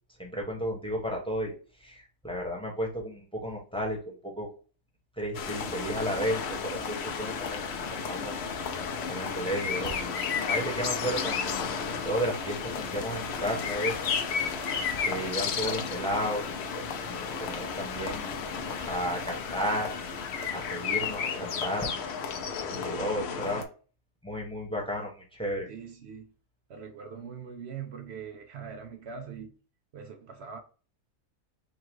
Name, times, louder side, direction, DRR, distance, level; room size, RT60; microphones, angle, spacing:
voice 1, 0.2-1.5 1.8-4.5 5.2-7.6 8.1-10.0 10.4-11.5 12.0-14.0 15.0-16.5 17.0-18.3 18.8-19.9 20.5-21.9 22.7-23.6 24.2-25.7, equal, 5° left, 1.0 m, -33 dB
sound 1, 5.3-23.6, left 6 dB, 60° left, 0.7 m, -33 dB
voice 2, 25.7-26.3 26.7-29.6 29.9-30.6, right 6 dB, 65° right, 0.6 m, -42 dB
3.8 x 2.4 x 4.6 m
omnidirectional pair, 1.7 m